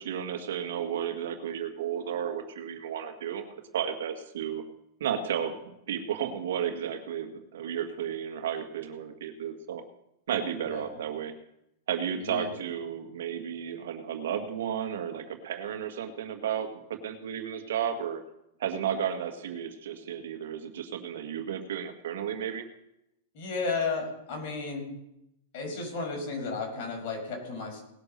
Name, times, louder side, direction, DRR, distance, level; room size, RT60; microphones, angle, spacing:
voice 1, 0.0-3.5 3.7-4.6 5.0-9.8 10.3-11.3 11.9-18.2 18.6-22.6, right 8 dB, 80° right, 6 dB, 1.8 m, -33 dB
voice 2, 12.2-12.5 23.3-24.9 25.5-27.8, left 4 dB, 55° left, 1 dB, 5.7 m, -33 dB
18.5 x 6.3 x 6.7 m, 0.82 s
supercardioid pair, 145°, 0 cm